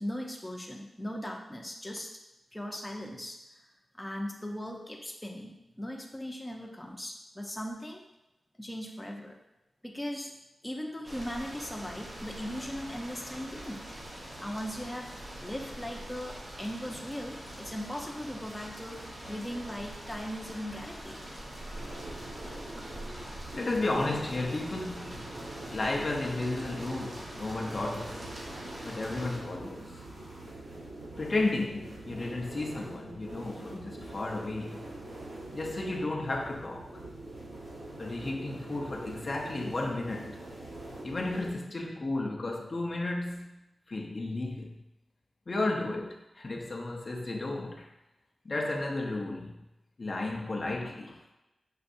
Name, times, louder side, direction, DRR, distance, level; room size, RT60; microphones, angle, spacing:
voice 1, 0.0-2.1 2.5-3.7 3.9-8.0 8.6-9.4 9.8-10.3 10.6-13.9 14.4-15.1 15.4-21.2, equal, 10° left, 0 dB, 0.6 m, -38 dB
sound 1, 11.0-29.4, right 1 dB, 40° right, 1.3 m, -44 dB
sound 2, 21.7-41.5, right 1 dB, 80° right, 1.3 m, -44 dB
voice 2, 23.1-25.3 25.7-28.3 28.8-29.9 31.2-34.8 35.5-37.0 38.0-40.4 41.0-43.6 43.9-44.8 45.5-47.9 48.4-49.6 50.0-51.2, left 2 dB, 45° left, -1 dB, 0.7 m, -33 dB
6.4 x 2.5 x 2.6 m, 0.95 s
cardioid pair, 65°, 0 cm